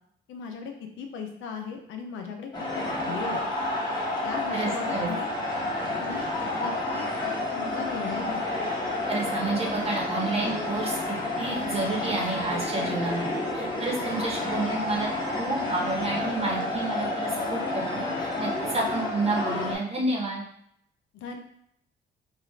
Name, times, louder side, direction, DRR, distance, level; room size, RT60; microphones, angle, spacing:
voice 1, 0.3-2.5 2.7-3.5 4.2-5.4 6.0-6.3 6.6-7.1 7.5-8.4 21.1-21.4, left 5 dB, 80° left, 4 dB, 0.6 m, -37 dB
sound 1, 2.5-19.8, left 2 dB, 20° left, 1.1 m, -30 dB
voice 2, 4.5-5.1 9.1-11.0 11.4-15.1 15.4-20.4, right 2 dB, 30° right, -2 dB, 1.1 m, -30 dB
3.6 x 2.4 x 3.1 m, 0.73 s
cardioid pair, 90°, 20 cm